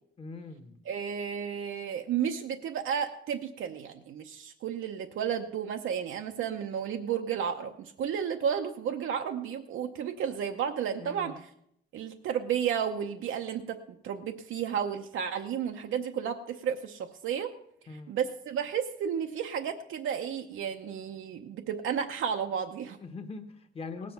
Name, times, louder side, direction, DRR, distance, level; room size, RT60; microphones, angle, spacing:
voice 1, 0.2-0.8 11.0-11.4 17.9-18.2 23.0-24.1, left 4 dB, 30° left, 8 dB, 1.0 m, -42 dB
voice 2, 0.9-11.3 11.9-17.5 17.9-23.0, right 8 dB, 85° right, 5 dB, 0.8 m, -32 dB
18.0 x 7.5 x 5.8 m, 0.71 s
wide cardioid pair, 180°, 20 cm